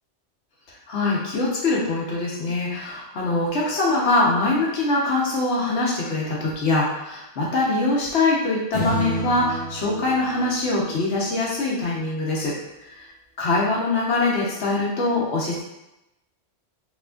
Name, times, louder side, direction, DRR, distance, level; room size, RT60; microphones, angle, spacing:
voice 1, 0.9-12.5 12.8-13.0 13.4-15.6, left 2 dB, 70° left, -4 dB, 1.1 m, -23 dB
sound 1, 8.7-11.4, right 2 dB, 35° left, 0.7 m, -31 dB
3.4 x 2.5 x 2.3 m, 0.91 s
omnidirectional pair, 1.2 m